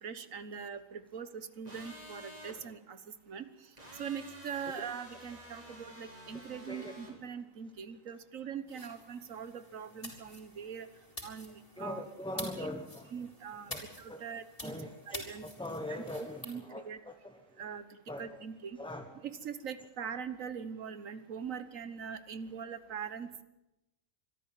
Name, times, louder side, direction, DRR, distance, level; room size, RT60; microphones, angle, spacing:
voice 1, 0.0-3.0 3.3-10.9 11.2-12.0 12.3-12.7 13.1-14.7 15.1-15.4 15.9-17.0 17.6-17.8 18.2-18.8 19.2-23.4, right 7 dB, 75° right, 12 dB, 1.6 m, -42 dB
sound 1, 1.6-2.6 3.8-7.1, equal, 30° right, 4.7 m, -50 dB
voice 2, 6.3-7.0 11.8-13.1 13.7-13.8 14.1-14.2 14.6-17.4 18.1-18.4 18.8-19.1, left 1 dB, 5° left, 6 dB, 1.1 m, -42 dB
sound 2, 8.7-16.6, left 1 dB, 25° left, 4.2 m, -48 dB
24.5 x 13.0 x 9.0 m, 0.98 s
omnidirectional pair, 1.4 m